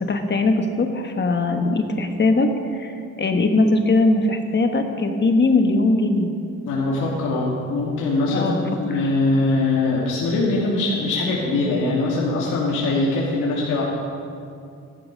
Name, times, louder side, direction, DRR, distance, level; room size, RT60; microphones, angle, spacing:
voice 1, 0.1-2.9 3.2-6.3 8.3-9.1, left 2 dB, 35° left, 5 dB, 1.4 m, -20 dB
voice 2, 6.6-13.8, left 2 dB, 90° left, -5 dB, 2.3 m, -22 dB
14.5 x 11.5 x 5.3 m, 2.5 s
cardioid pair, 90°, 30 cm